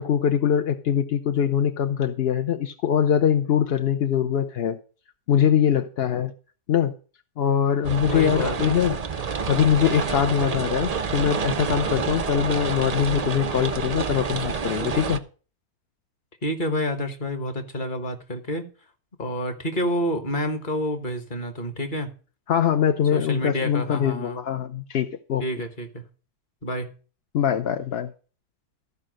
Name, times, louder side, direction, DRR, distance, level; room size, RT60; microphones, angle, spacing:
voice 1, 0.0-4.8 5.3-6.3 6.7-6.9 7.4-9.0 9.5-15.2 22.5-25.4 27.3-28.1, left 9 dB, 60° left, 8 dB, 0.6 m, -23 dB
sound 1, 7.8-15.2, right 5 dB, 70° right, 0.3 m, -28 dB
voice 2, 8.0-8.8 16.4-18.7 19.2-22.1 23.1-24.4 25.4-26.0 26.6-26.9, equal, 35° left, 7 dB, 1.3 m, -28 dB
13.5 x 4.9 x 6.3 m, 0.38 s
omnidirectional pair, 1.7 m